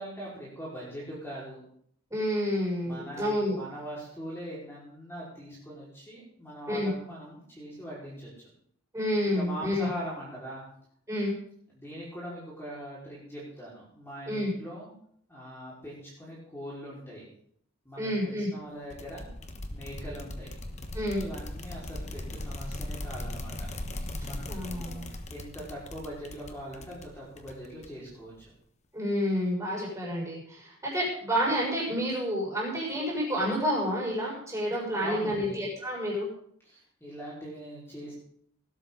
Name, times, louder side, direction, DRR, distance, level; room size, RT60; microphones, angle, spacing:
voice 1, 0.0-1.6 2.8-8.3 9.3-10.6 11.7-14.9 15.3-17.3 17.8-19.2 19.7-20.5 20.9-23.7 24.2-28.3 35.0-35.6 36.6-38.1, equal, 10° left, -7 dB, 5.0 m, -41 dB
voice 2, 2.1-3.6 6.7-6.9 8.9-9.9 11.1-11.3 14.3-14.5 18.0-18.5 20.9-21.2 24.2-25.0 28.9-36.3, equal, 15° right, -4 dB, 6.7 m, -29 dB
sound 1, 18.9-28.1, left 1 dB, 30° left, 1.2 m, -39 dB
19.0 x 12.5 x 4.0 m, 0.65 s
head